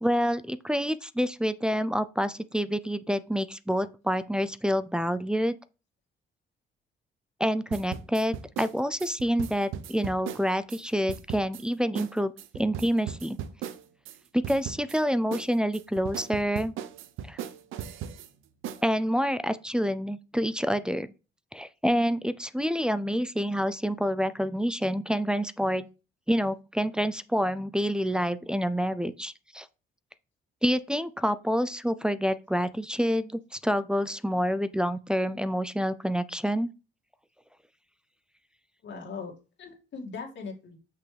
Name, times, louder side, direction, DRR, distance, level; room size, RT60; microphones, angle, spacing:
voice 1, 0.0-5.6 7.4-13.4 14.3-16.7 17.3-17.4 18.8-21.1 21.5-25.9 26.3-29.7 30.6-36.7, equal, 5° right, 0.4 m, -27 dB
sound 1, 7.7-10.8 11.1-11.6 12.0-12.1 12.4-14.2 14.4-15.0 15.3-18.3 18.6-18.8, right 9 dB, 90° right, 0.6 m, -37 dB
voice 2, 38.8-40.8, left 4 dB, 70° left, 2.2 m, -40 dB
6.1 x 5.5 x 3.3 m
cardioid pair, 90°, 20 cm